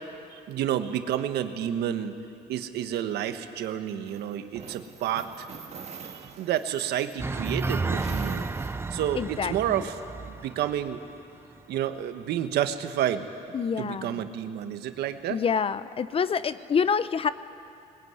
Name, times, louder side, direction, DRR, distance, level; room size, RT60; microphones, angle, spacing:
voice 1, 0.3-2.1 2.5-5.5 6.2-8.5 8.9-11.0 11.7-13.3 13.8-15.4, right 10 dB, 75° right, 8 dB, 1.4 m, -30 dB
sound 1, 4.1-9.2, right 6 dB, 40° right, 1.8 m, -46 dB
sound 2, 7.2-11.1 11.4-11.5, right 3 dB, 15° right, 0.6 m, -32 dB
voice 2, 9.2-9.9 13.5-14.2 15.3-17.3, left 6 dB, 35° left, 15 dB, 0.7 m, -27 dB
20.5 x 20.0 x 9.5 m, 2.6 s
cardioid pair, 110°, 17 cm